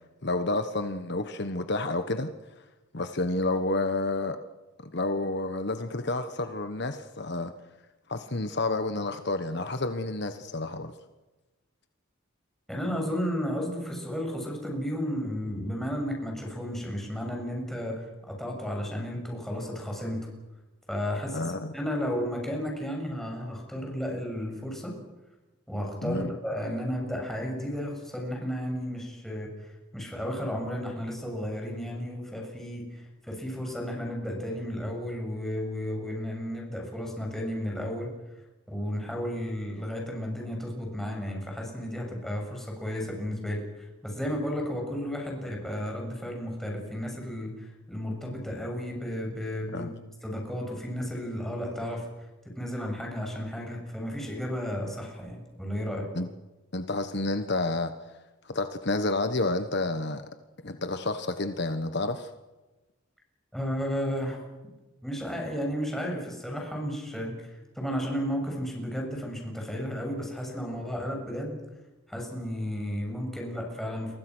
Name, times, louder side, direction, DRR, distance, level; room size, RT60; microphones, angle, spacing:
voice 1, 0.2-2.3 2.9-4.4 4.8-7.5 8.1-10.9 21.3-21.7 26.0-26.3 49.7-49.9 56.1-56.3 56.7-57.9 58.4-60.3 60.6-62.3, left 2 dB, 55° left, 9 dB, 1.3 m, -30 dB
voice 2, 12.7-20.3 20.9-24.9 25.7-29.5 29.9-38.1 38.7-43.6 44.0-50.0 50.2-52.1 52.6-56.1 63.5-64.4 65.0-71.6 72.1-74.2, equal, ahead, 0 dB, 7.2 m, -33 dB
30.0 x 23.5 x 6.3 m, 1.1 s
head